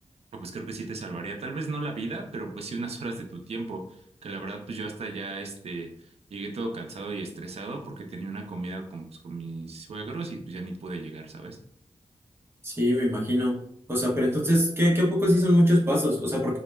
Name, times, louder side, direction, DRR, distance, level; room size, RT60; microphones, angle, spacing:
voice 1, 0.3-11.6, right 3 dB, 65° right, 3 dB, 0.5 m, -35 dB
voice 2, 12.6-13.6 13.9-16.6, equal, 20° right, -3 dB, 0.7 m, -22 dB
2.1 x 2.0 x 3.1 m, 0.66 s
wide cardioid pair, 120°, 11 cm